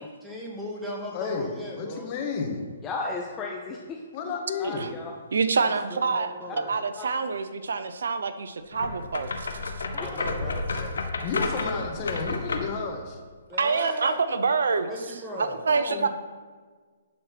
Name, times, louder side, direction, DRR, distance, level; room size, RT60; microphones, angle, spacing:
voice 1, 0.2-2.1 5.9-6.7 10.0-10.6 13.5-14.2 14.8-15.6, left 1 dB, 5° right, -4 dB, 2.0 m, -36 dB
voice 2, 1.1-1.5 1.8-2.6 4.1-4.9 11.2-13.2 15.7-16.1, left 5 dB, 35° left, 2 dB, 1.5 m, -32 dB
voice 3, 2.8-4.0 4.6-5.1 7.0-7.1 9.9-10.1 10.7-10.9, left 3 dB, 20° left, 0 dB, 0.8 m, -34 dB
voice 4, 5.3-6.3 6.7-9.7 13.6-14.9 15.4-16.1, right 5 dB, 75° right, 11 dB, 0.6 m, -26 dB
sound 1, 8.7-12.8, left 3 dB, 80° left, 1.1 m, -31 dB
10.5 x 4.3 x 6.0 m, 1.5 s
hypercardioid pair, 140°, 0 cm